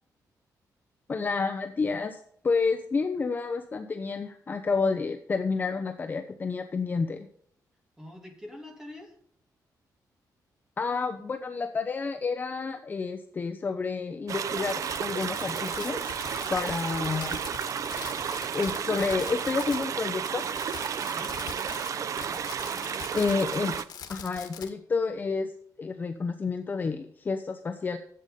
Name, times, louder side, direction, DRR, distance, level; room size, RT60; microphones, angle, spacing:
voice 1, 1.1-7.3 10.8-16.1 16.5-17.4 18.5-20.4 23.1-23.8 24.1-25.5 25.8-28.0, left 4 dB, 25° left, 6 dB, 0.8 m, -29 dB
voice 2, 8.0-9.2 21.0-21.9 22.1-23.1, left 1 dB, 10° right, 2 dB, 2.7 m, -47 dB
sound 1, 14.3-23.9, right 8 dB, 50° right, 0.6 m, -32 dB
Fireworks, 14.5-19.9 20.2-24.7, left 8 dB, 90° left, 1.9 m, -42 dB
12.5 x 8.1 x 5.3 m, 0.63 s
wide cardioid pair, 180°, 7 cm